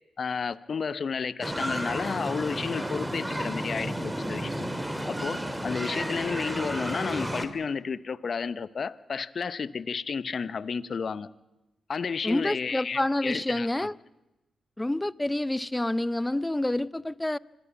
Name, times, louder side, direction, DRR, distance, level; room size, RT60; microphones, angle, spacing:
voice 1, 0.2-4.7 5.1-11.3 11.9-13.9, left 5 dB, 60° left, 0.8 m, -32 dB
sound 1, 1.4-7.5, equal, 10° right, 2.8 m, -32 dB
voice 2, 12.2-13.9 14.8-17.4, left 1 dB, 15° left, 0.7 m, -28 dB
25.0 x 17.0 x 8.4 m
supercardioid pair, 40°, 0 cm